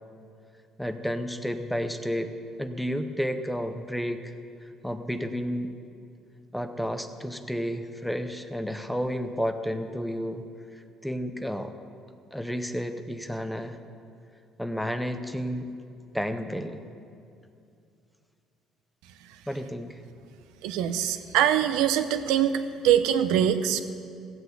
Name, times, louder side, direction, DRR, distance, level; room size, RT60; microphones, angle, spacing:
voice 1, 0.8-2.3 2.6-4.3 4.8-5.7 6.5-10.4 11.0-11.7 12.3-13.8 14.6-15.7 16.1-16.8 19.5-20.0, equal, ahead, 8 dB, 0.7 m, -31 dB
voice 2, 20.6-22.6 22.8-23.8, right 10 dB, 90° right, 10 dB, 0.8 m, -23 dB
15.5 x 8.2 x 8.0 m, 2.5 s
cardioid pair, 150°, 0 cm